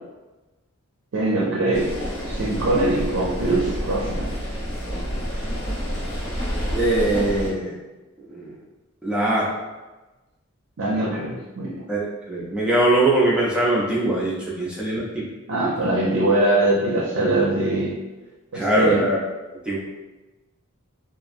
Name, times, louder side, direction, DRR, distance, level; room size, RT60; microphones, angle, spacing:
voice 1, 1.1-1.9 2.3-4.3 10.8-11.9 15.5-18.0 18.5-19.0, right 2 dB, 70° right, -3 dB, 0.5 m, -22 dB
sound 1, 1.7-7.5, equal, 70° left, 1.1 m, -28 dB
voice 2, 6.7-7.8 8.3-8.5 9.0-9.5 11.9-15.3 18.5-19.2 19.7-19.8, right 1 dB, 5° right, -6 dB, 0.4 m, -21 dB
2.8 x 2.4 x 2.5 m, 1.1 s
head